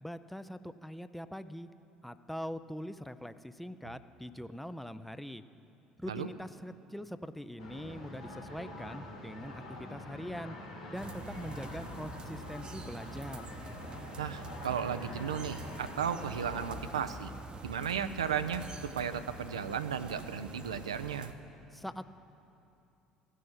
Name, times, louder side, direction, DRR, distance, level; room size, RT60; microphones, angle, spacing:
voice 1, 0.0-1.7 2.0-5.4 6.0-10.6 10.9-13.5 21.7-22.1, equal, 5° left, 12 dB, 0.4 m, -42 dB
sound 1, 7.6-17.1, left 1 dB, 75° left, 1.7 m, -46 dB
sound 2, 10.9-21.3, right 3 dB, 30° right, 0.8 m, -46 dB
voice 2, 14.2-17.3 17.6-21.3, right 7 dB, 75° right, 11 dB, 0.4 m, -35 dB
15.0 x 6.3 x 7.7 m, 2.8 s
figure-of-eight pair, 60°, 3 cm